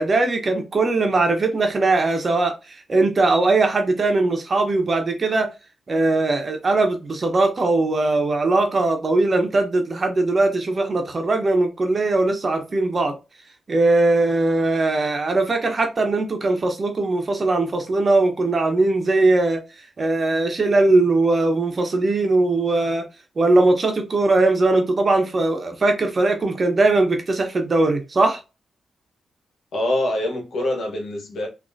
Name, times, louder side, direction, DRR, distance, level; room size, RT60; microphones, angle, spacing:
voice 1, 0.0-5.5 5.9-13.1 13.7-19.6 20.0-23.0 23.4-28.4, right 2 dB, 45° right, 1.0 m, -20 dB
voice 2, 29.7-31.5, left 1 dB, 75° left, 1.2 m, -24 dB
3.7 x 2.8 x 2.6 m
cardioid pair, 55°, 0 cm